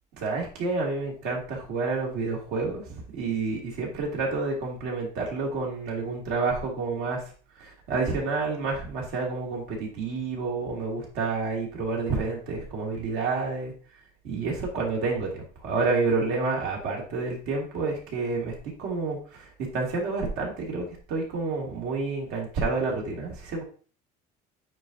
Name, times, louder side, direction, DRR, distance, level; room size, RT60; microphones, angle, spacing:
voice 1, 0.2-7.2 7.6-13.7 14.2-23.6, right 3 dB, 75° right, -1 dB, 2.6 m, -29 dB
9.2 x 4.3 x 2.7 m, 0.40 s
cardioid pair, 155°, 17 cm